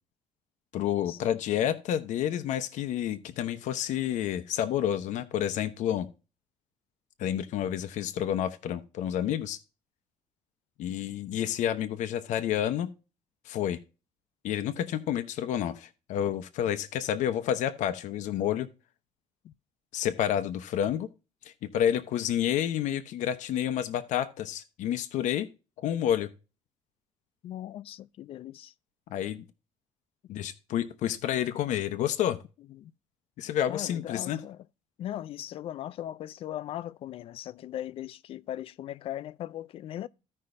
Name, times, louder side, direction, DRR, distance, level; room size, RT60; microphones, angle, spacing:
voice 1, 0.7-6.1 7.2-9.6 10.8-12.9 13.5-13.8 14.4-18.7 19.9-21.1 21.4-25.5 25.8-26.3 29.1-29.4 30.3-32.4 33.4-34.4, left 10 dB, 60° left, 0.9 m, -29 dB
voice 2, 27.4-28.7 32.7-32.9 33.7-34.7 35.0-40.1, left 12 dB, 40° left, 0.3 m, -39 dB
15.5 x 5.5 x 2.6 m
cardioid pair, 175°, 14 cm